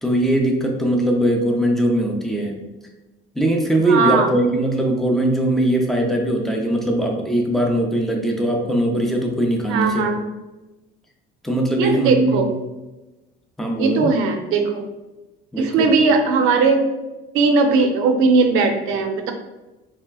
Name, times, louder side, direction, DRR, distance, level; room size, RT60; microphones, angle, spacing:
voice 1, 0.0-2.6 3.4-10.1 11.4-12.6 13.6-14.1 15.5-15.9, right 1 dB, ahead, 1 dB, 0.4 m, -20 dB
voice 2, 3.9-4.3 9.7-10.2 11.8-12.5 13.7-14.8 15.6-16.8 17.3-19.3, right 4 dB, 85° right, 5 dB, 0.6 m, -18 dB
4.2 x 3.1 x 2.3 m, 1.1 s
cardioid pair, 155°, 21 cm